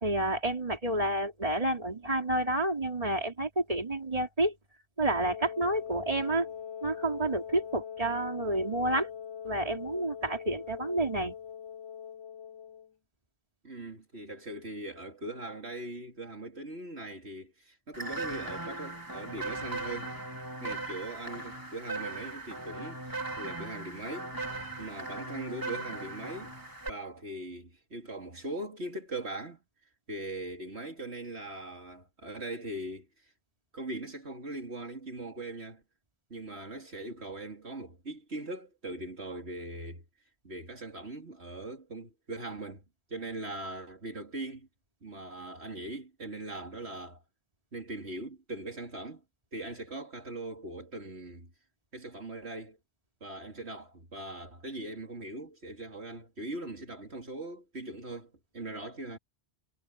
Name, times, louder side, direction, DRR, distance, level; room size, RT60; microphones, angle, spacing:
voice 1, 0.0-4.5 5.0-6.5 6.8-9.1 9.4-11.3, right 1 dB, 35° right, 3.1 m, -29 dB
Wind instrument woodwind instrument, 5.0-12.9, left 8 dB, 25° left, 1.8 m, -42 dB
voice 2, 13.6-20.1 20.6-24.3 24.8-26.5 26.9-29.6 30.1-33.1 33.7-35.8 36.3-40.0 40.4-42.8 43.1-44.7 45.0-47.2 47.7-49.2 49.5-51.5 51.9-52.8 53.2-59.2, right 2 dB, 80° right, 3.7 m, -40 dB
sound 1, 17.9-26.9, right 2 dB, 20° right, 3.4 m, -38 dB
omnidirectional pair, 1.1 m